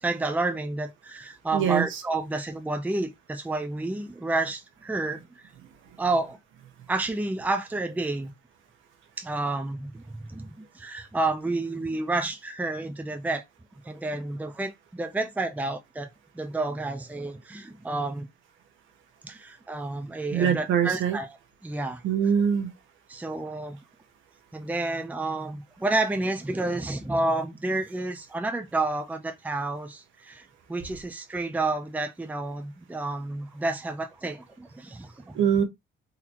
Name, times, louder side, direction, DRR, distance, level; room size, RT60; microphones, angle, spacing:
voice 1, 0.0-5.2 6.0-6.4 6.9-8.3 9.2-13.4 13.8-18.3 19.2-21.4 21.6-22.0 23.1-23.8 24.5-35.3, right 2 dB, 10° right, 0.6 m, -30 dB
voice 2, 1.5-2.0 20.3-21.2 22.0-22.7 35.3-35.6, right 8 dB, 80° right, 1.1 m, -23 dB
3.9 x 2.8 x 2.9 m
cardioid pair, 90°, 20 cm